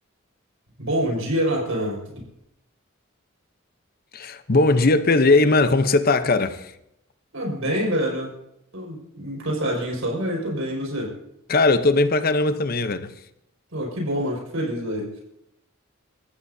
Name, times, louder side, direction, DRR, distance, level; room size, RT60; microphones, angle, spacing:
voice 1, 0.8-2.2 7.3-8.3 8.7-11.1 13.7-15.2, equal, 85° right, 5.5 m, -26 dB
voice 2, 4.1-6.7 11.5-13.1, left 3 dB, 45° left, 0.8 m, -19 dB
27.0 x 14.5 x 2.8 m
head